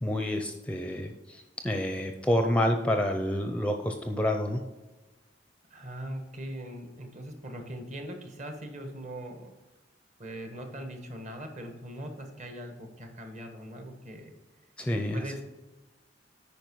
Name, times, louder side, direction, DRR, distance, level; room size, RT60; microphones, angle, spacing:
voice 1, 0.0-4.6 14.8-15.4, left 1 dB, 5° left, 5 dB, 0.6 m, -28 dB
voice 2, 5.7-9.5 10.2-14.4 15.1-15.4, right 1 dB, 40° right, 5 dB, 1.4 m, -41 dB
9.1 x 5.2 x 4.6 m, 1.1 s
head